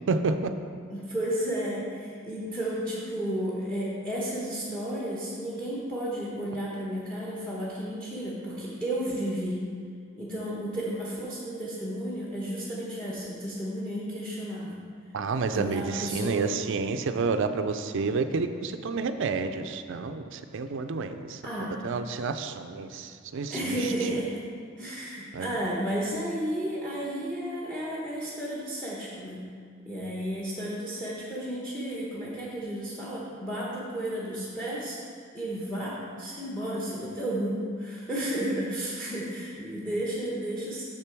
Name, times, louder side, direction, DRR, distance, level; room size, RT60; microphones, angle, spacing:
voice 1, 0.1-0.5 15.1-21.4 21.8-23.8 25.3-25.5, right 4 dB, 65° right, 9 dB, 0.4 m, -29 dB
voice 2, 0.9-9.7 10.1-14.8 15.5-16.5 21.4-21.8 23.5-24.5 24.8-29.5 29.8-35.0 35.3-40.8, right 1 dB, 5° left, -5 dB, 1.0 m, -32 dB
6.7 x 6.7 x 4.6 m, 2.1 s
head